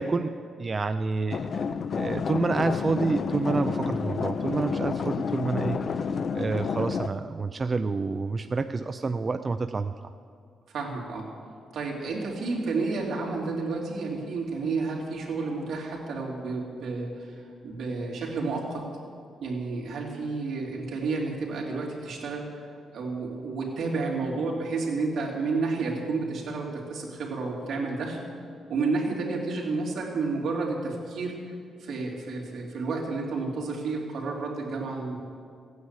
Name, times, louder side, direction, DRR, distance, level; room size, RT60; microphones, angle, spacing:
voice 1, 0.0-1.6 1.9-5.8 6.3-9.9, right 3 dB, 25° right, 9 dB, 0.4 m, -28 dB
sound 1, 1.3-7.1, left 6 dB, 40° left, 0.5 m, -29 dB
voice 2, 10.7-11.2 11.7-17.3 17.6-18.8 19.4-22.5 22.9-28.2 28.7-31.4 31.8-35.2, right 3 dB, 65° right, -2 dB, 3.2 m, -31 dB
15.5 x 9.6 x 8.2 m, 2.3 s
wide cardioid pair, 165°, 0 cm